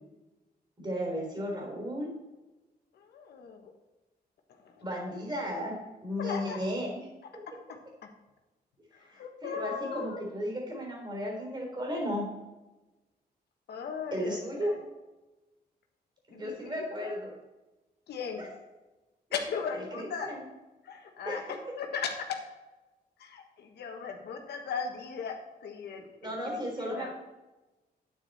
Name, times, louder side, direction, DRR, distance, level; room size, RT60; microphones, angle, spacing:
voice 1, 0.8-2.1 4.8-5.7 6.0-7.1 9.1-12.3 14.1-14.8 16.3-17.3 18.4-18.5 19.9-20.4 21.3-21.4 26.2-27.1, equal, 25° right, 0 dB, 3.7 m, -34 dB
voice 2, 2.9-3.7 6.2-6.6 9.2-10.3 13.7-14.9 16.3-17.2 18.1-18.5 19.3-20.3 20.8-21.4 21.8-22.4 23.2-27.1, left 6 dB, 90° left, 3 dB, 1.4 m, -37 dB
9.3 x 9.2 x 4.2 m, 1.1 s
cardioid pair, 110°, 17 cm